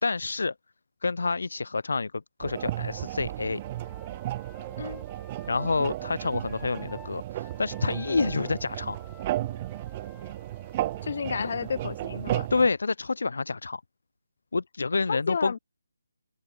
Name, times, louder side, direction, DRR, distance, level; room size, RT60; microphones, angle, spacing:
voice 1, 0.0-0.5 1.0-3.6 5.5-9.0 11.4-11.5 12.5-13.8 14.5-15.6, left 3 dB, 60° left, 0.4 m, -28 dB
sound 1, 2.4-12.7, right 15 dB, 25° right, 1.0 m, -34 dB
Wind instrument woodwind instrument, 3.6-7.1 7.4-11.2, left 8 dB, 10° left, 5.5 m, -54 dB
voice 2, 11.0-12.5 15.1-15.6, left 6 dB, 45° left, 1.2 m, -31 dB
open air
figure-of-eight pair, 150°, 0 cm